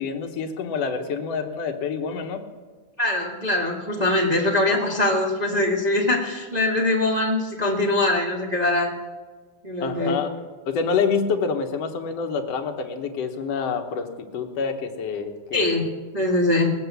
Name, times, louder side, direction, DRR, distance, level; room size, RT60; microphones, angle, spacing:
voice 1, 0.0-2.4 9.8-10.3 10.7-15.8, left 5 dB, 60° left, 4 dB, 2.1 m, -27 dB
voice 2, 3.0-8.9 9.6-10.2 15.5-15.8 16.1-16.7, left 2 dB, 25° right, -2 dB, 0.9 m, -22 dB
19.5 x 7.8 x 8.3 m, 1.4 s
omnidirectional pair, 3.7 m